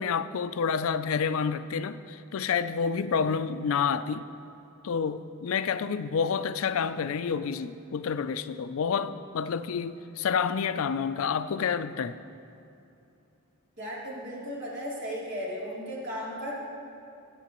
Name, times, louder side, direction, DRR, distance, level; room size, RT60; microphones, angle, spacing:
voice 1, 0.0-4.3 4.8-12.2, left 6 dB, 70° left, 0.4 m, -29 dB
voice 2, 13.8-16.5, equal, 55° right, 3.0 m, -35 dB
20.0 x 8.3 x 3.0 m
head